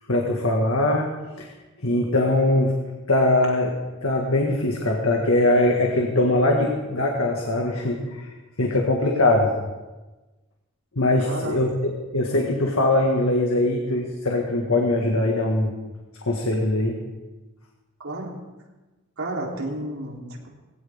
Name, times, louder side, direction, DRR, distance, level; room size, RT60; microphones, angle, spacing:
voice 1, 0.1-1.1 1.4-1.5 1.8-2.7 3.1-3.7 4.0-8.3 8.6-9.5 11.0-15.7 16.2-17.0, left 2 dB, 75° left, 0 dB, 1.9 m, -21 dB
voice 2, 11.2-11.6 18.0-18.3 19.2-20.5, right 2 dB, 75° right, -3 dB, 3.7 m, -31 dB
20.5 x 17.0 x 3.7 m, 1.2 s
head